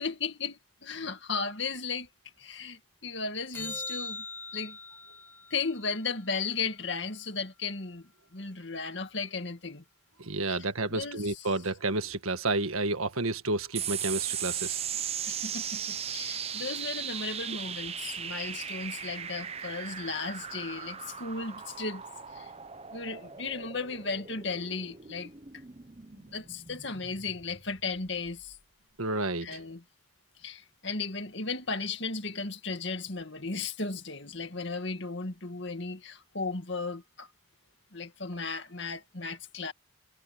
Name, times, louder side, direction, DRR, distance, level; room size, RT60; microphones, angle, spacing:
voice 1, 0.0-2.1 2.4-4.2 4.5-4.8 5.5-9.8 10.5-10.7 10.9-11.5 15.3-22.0 22.3-22.5 22.9-25.3 26.3-28.6 29.4-29.8 30.4-37.3 37.9-39.7, left 4 dB, 55° left, 2.1 m, -35 dB
sound 1, 3.5-8.0 14.6-14.7, left 2 dB, 10° left, 5.5 m, -43 dB
voice 2, 10.2-14.8 29.0-29.5, right 2 dB, 90° right, 1.7 m, -30 dB
sound 2, 13.8-28.6, right 8 dB, 30° right, 0.9 m, -38 dB
head